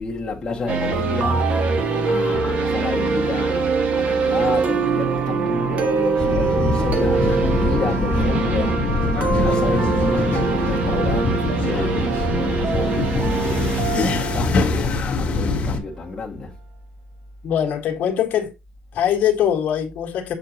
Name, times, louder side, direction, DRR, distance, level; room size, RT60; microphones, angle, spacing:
voice 1, 0.0-1.5 2.0-16.5, left 4 dB, 20° left, 2.0 m, -30 dB
sound 1, 0.7-15.5, right 5 dB, 50° right, 1.2 m, -23 dB
sound 2, 6.2-15.8, left 3 dB, 40° left, 1.6 m, -23 dB
voice 2, 17.4-18.5 18.9-20.3, left 10 dB, 65° left, 1.8 m, -22 dB
7.3 x 6.7 x 2.9 m
cardioid pair, 180°, 3 cm